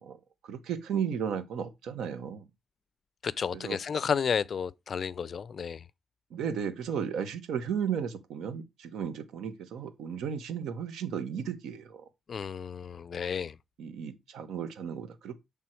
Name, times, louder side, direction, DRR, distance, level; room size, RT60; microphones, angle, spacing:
voice 1, 0.0-2.5 3.5-3.8 6.3-12.1 13.8-15.4, right 7 dB, 90° right, 1.0 m, -34 dB
voice 2, 3.2-5.8 12.3-13.6, left 7 dB, 50° left, 0.3 m, -32 dB
7.6 x 3.5 x 4.4 m
cardioid pair, 105°, 0 cm